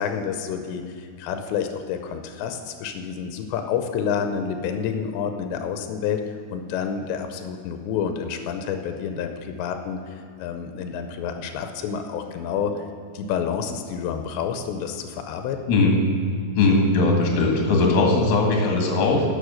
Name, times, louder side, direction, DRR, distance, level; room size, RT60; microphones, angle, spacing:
voice 1, 0.0-10.0 10.4-12.7 13.1-15.6, left 7 dB, 85° left, 6 dB, 2.9 m, -29 dB
voice 2, 16.6-19.2, left 3 dB, 55° left, 0 dB, 2.7 m, -19 dB
11.5 x 7.4 x 6.3 m, 2.4 s
omnidirectional pair, 5.0 m